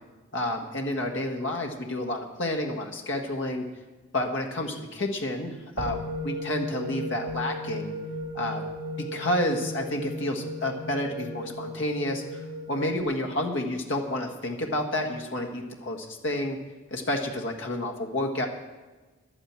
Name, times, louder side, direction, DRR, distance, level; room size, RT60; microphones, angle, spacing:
voice 1, 0.3-3.6 4.1-7.9 8.3-8.6 9.0-16.6 16.9-18.5, left 1 dB, 60° left, 2 dB, 1.5 m, -30 dB
sound 1, 5.8-13.0, equal, 80° right, 2.0 m, -35 dB
11.0 x 8.9 x 8.7 m, 1.3 s
head